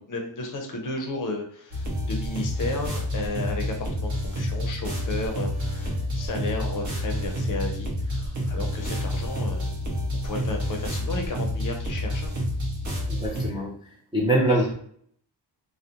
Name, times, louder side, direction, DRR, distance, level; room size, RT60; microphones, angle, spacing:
voice 1, 0.0-9.7 10.2-12.3, left 2 dB, 50° left, 3 dB, 0.5 m, -33 dB
sound 1, 1.7-13.5, equal, 40° right, 0.7 m, -29 dB
voice 2, 13.1-13.7 14.1-14.7, right 1 dB, 15° right, -6 dB, 0.4 m, -23 dB
2.4 x 2.0 x 2.7 m, 0.62 s
wide cardioid pair, 160°, 43 cm